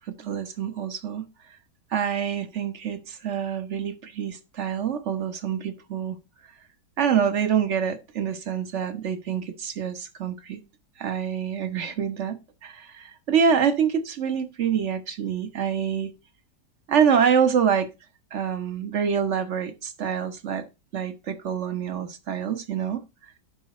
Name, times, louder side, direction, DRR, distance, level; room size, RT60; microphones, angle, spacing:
voice 1, 0.1-1.3 1.9-6.2 7.0-10.6 11.0-16.1 16.9-17.9 18.3-20.7 20.9-23.0, right 7 dB, 45° right, 1.2 m, -26 dB
11.5 x 5.2 x 4.2 m
omnidirectional pair, 1.9 m